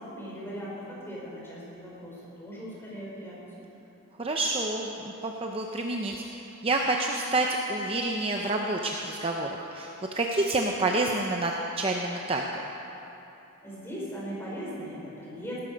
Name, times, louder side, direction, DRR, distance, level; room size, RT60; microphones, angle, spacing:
voice 1, 0.0-3.7 13.6-15.6, equal, 10° left, -6 dB, 4.2 m, -39 dB
voice 2, 4.2-9.9 10.1-12.4, right 2 dB, 25° right, 1 dB, 0.7 m, -28 dB
18.0 x 12.5 x 5.2 m, 3.0 s
head